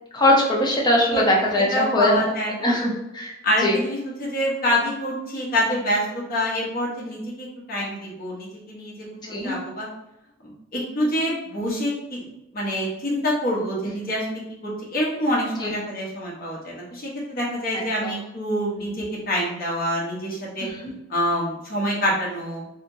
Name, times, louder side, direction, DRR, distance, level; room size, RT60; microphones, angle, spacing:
voice 1, 0.1-2.2 2.6-3.3 3.6-3.8 9.3-9.6 15.6-15.7 17.7-18.1 20.6-20.9, left 1 dB, 20° left, -3 dB, 0.8 m, -21 dB
voice 2, 1.7-2.7 3.4-8.9 9.2-9.9 10.7-20.7 21.1-22.6, equal, 50° left, -4 dB, 1.1 m, -26 dB
3.3 x 2.9 x 2.7 m, 0.90 s
head